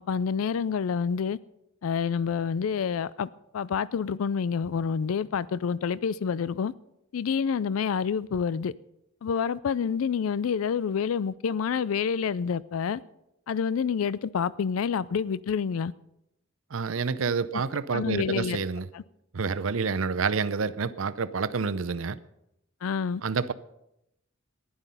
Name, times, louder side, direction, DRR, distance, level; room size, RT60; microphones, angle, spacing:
voice 1, 0.0-1.4 1.8-3.3 3.5-6.7 7.1-8.7 9.2-13.0 13.5-15.9 17.9-18.6 18.9-19.0 22.8-23.2, left 6 dB, 80° left, 20 dB, 0.4 m, -28 dB
voice 2, 16.7-18.9 19.3-22.2 23.2-23.5, right 5 dB, 70° right, 15 dB, 0.6 m, -28 dB
15.0 x 11.0 x 5.4 m, 0.84 s
head